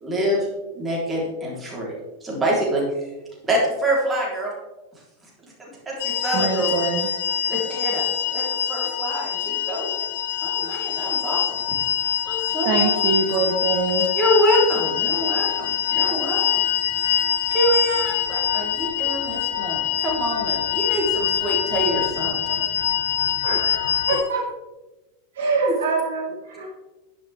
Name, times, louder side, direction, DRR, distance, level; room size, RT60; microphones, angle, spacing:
voice 1, 0.0-0.5 0.7-1.9 2.2-2.9 3.5-4.5 5.6-6.9 7.5-9.9 10.4-11.6 12.3-12.9 13.3-13.4 14.2-16.4 17.0-17.2 17.5-22.6 25.6-25.7, equal, 15° right, -3 dB, 3.7 m, -25 dB
sound 1, 6.0-24.2, left 9 dB, 55° left, 0.6 m, -24 dB
voice 2, 6.3-7.1 12.6-14.1, right 4 dB, 45° right, 3 dB, 1.2 m, -24 dB
voice 3, 23.4-24.4 25.4-26.7, right 3 dB, 60° right, -3 dB, 3.8 m, -25 dB
11.0 x 10.0 x 3.5 m, 1.1 s
figure-of-eight pair, 90°, 0 cm